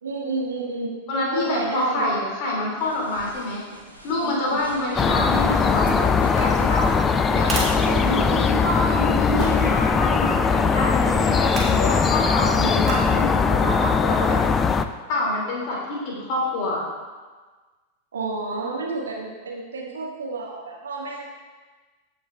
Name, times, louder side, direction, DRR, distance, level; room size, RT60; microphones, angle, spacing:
voice 1, 0.0-0.9 1.3-2.1 4.4-4.6 7.8-8.5 18.1-21.2, right 3 dB, 65° right, -3 dB, 2.0 m, -30 dB
voice 2, 1.1-3.6 4.0-6.9 7.3-7.7 8.0-14.4 15.1-16.8, left 1 dB, 45° left, -4 dB, 2.7 m, -26 dB
sound 1, 2.8-7.1, right 1 dB, 90° left, 1.5 m, -44 dB
sound 2, 5.0-14.8, left 5 dB, 20° left, 0.4 m, -20 dB
sound 3, 6.2-8.7 9.4-9.7 11.4-11.9 12.8-13.2 13.7-13.8, right 2 dB, 20° right, 2.2 m, -33 dB
16.0 x 6.0 x 2.4 m, 1.4 s
figure-of-eight pair, 90°, 0 cm